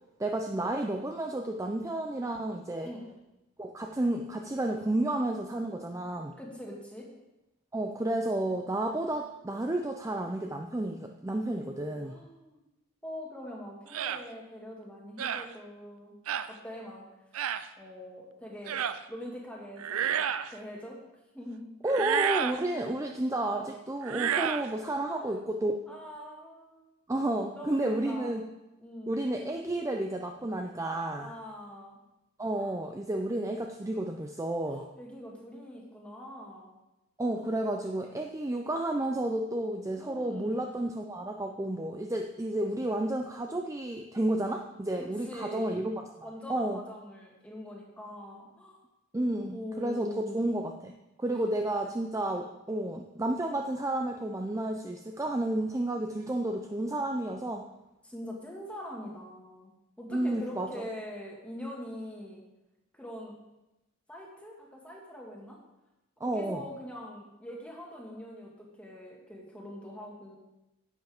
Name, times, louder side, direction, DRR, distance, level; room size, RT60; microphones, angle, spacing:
voice 1, 0.2-2.9 3.6-6.4 7.7-12.2 21.8-25.7 27.1-28.4 29.1-31.3 32.4-34.8 37.2-45.9 46.5-46.8 49.1-50.9 51.2-57.7 60.1-60.8 66.2-66.6, right 1 dB, 15° right, 3 dB, 0.4 m, -31 dB
voice 2, 6.4-7.1 12.0-12.6 13.0-16.1 16.6-17.0 17.8-20.2 20.5-21.0 21.3-21.7 25.0-25.4 25.9-26.9 27.6-28.4 28.8-29.2 31.2-32.0 32.6-32.7 34.7-36.7 37.3-37.5 40.0-40.6 45.0-45.7 46.2-48.8 49.5-50.5 51.3-51.4 58.0-59.7 60.0-62.4 62.9-63.3 64.1-65.6 66.2-70.4, left 1 dB, 5° left, -2 dB, 1.8 m, -43 dB
sound 1, 13.9-14.2 15.2-15.5 16.3-16.5 17.3-17.7 18.7-19.0 19.8-20.5 21.9-22.6 24.0-24.7, right 9 dB, 90° right, 0.5 m, -30 dB
10.5 x 8.0 x 3.5 m, 0.96 s
head